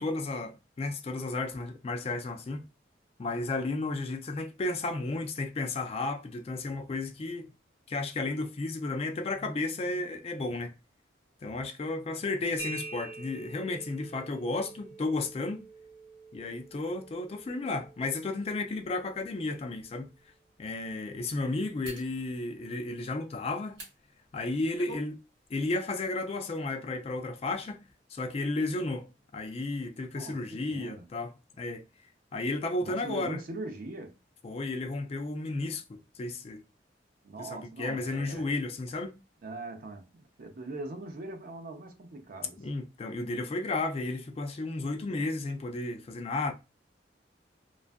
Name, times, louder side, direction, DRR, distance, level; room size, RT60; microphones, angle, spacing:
voice 1, 0.0-2.6 3.2-7.5 7.9-10.7 11.4-15.6 16.3-20.1 20.6-23.8 24.3-25.2 25.5-27.8 28.1-31.8 32.3-33.4 34.4-36.6 37.4-39.2 42.6-46.5, left 2 dB, 35° left, 0.3 m, -33 dB
sound 1, 12.6-20.1, right 4 dB, 15° right, 1.1 m, -47 dB
sound 2, 19.8-19.9 21.8-22.1 23.7-23.9 24.5-25.1 25.5-25.6, right 1 dB, 70° right, 1.2 m, -45 dB
voice 2, 30.1-31.1 32.8-34.2 37.2-38.5 39.4-42.6, right 2 dB, 50° right, 0.5 m, -41 dB
2.3 x 2.2 x 2.4 m
head